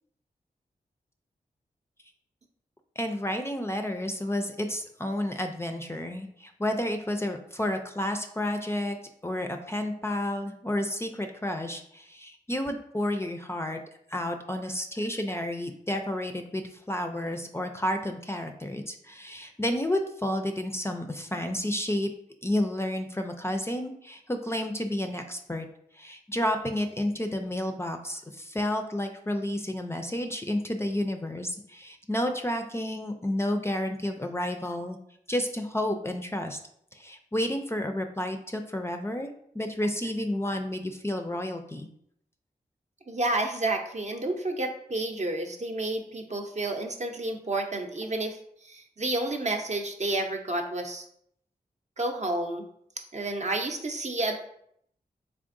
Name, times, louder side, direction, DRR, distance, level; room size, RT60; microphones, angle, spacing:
voice 1, 3.0-13.8 14.1-22.1 22.4-25.7 25.9-35.0 35.3-36.6 36.9-39.3 39.5-41.9, left 1 dB, 15° left, 4 dB, 0.4 m, -31 dB
voice 2, 43.1-51.0 52.0-52.7 53.1-54.4, right 2 dB, 45° right, 3 dB, 0.6 m, -30 dB
3.5 x 3.4 x 2.5 m, 0.69 s
cardioid pair, 45°, 16 cm